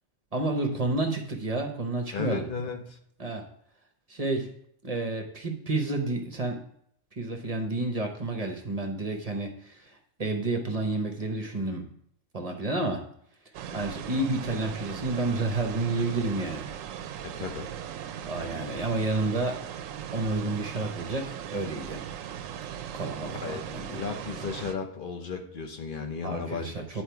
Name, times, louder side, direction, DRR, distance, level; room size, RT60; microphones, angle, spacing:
voice 1, 0.3-2.4 3.2-3.4 4.1-4.5 4.8-6.6 7.2-11.9 12.3-13.0 13.7-16.7 18.3-19.6 20.1-22.0 22.9-24.0 26.2-27.0, right 2 dB, 35° right, 3 dB, 0.8 m, -30 dB
voice 2, 2.1-3.0 17.2-17.7 23.4-27.0, left 5 dB, 45° left, 5 dB, 0.9 m, -35 dB
sound 1, 13.5-24.7, right 9 dB, 80° right, 0.9 m, -38 dB
8.7 x 4.4 x 4.6 m, 0.68 s
omnidirectional pair, 1.4 m